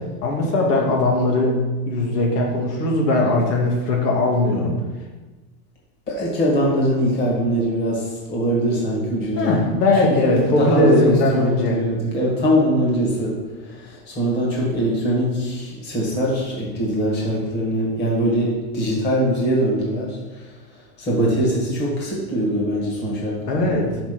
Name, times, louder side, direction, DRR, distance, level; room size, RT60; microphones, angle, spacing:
voice 1, 0.2-1.5 1.9-4.7 9.4-11.8 23.5-23.9, left 2 dB, 90° left, -1 dB, 2.5 m, -19 dB
voice 2, 6.1-9.7 10.0-24.0, equal, 20° left, -3 dB, 1.9 m, -22 dB
6.1 x 6.0 x 6.0 m, 1.2 s
supercardioid pair, 165°, 46 cm